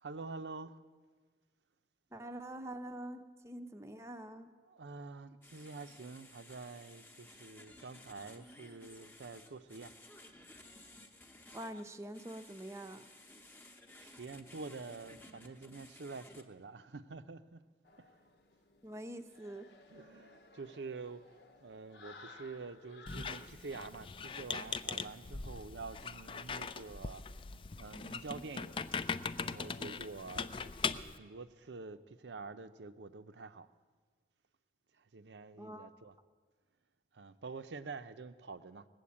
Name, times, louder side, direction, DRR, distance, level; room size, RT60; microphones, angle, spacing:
voice 1, 0.0-0.8 4.6-10.0 14.0-17.6 19.9-21.3 21.6-27.2 27.8-28.9 29.4-30.7 31.1-33.7 35.0-36.2 37.1-38.9, right 4 dB, 90° right, 0.6 m, -47 dB
voice 2, 2.1-4.5 11.5-13.1 18.8-19.7 35.6-35.9, right 1 dB, 15° right, 0.6 m, -45 dB
sound 1, 5.4-16.4, left 1 dB, 10° left, 0.8 m, -57 dB
sound 2, 17.9-23.5, left 2 dB, 80° left, 1.1 m, -57 dB
Squeak, 23.1-31.2, left 5 dB, 30° left, 0.3 m, -40 dB
19.0 x 7.8 x 8.5 m
head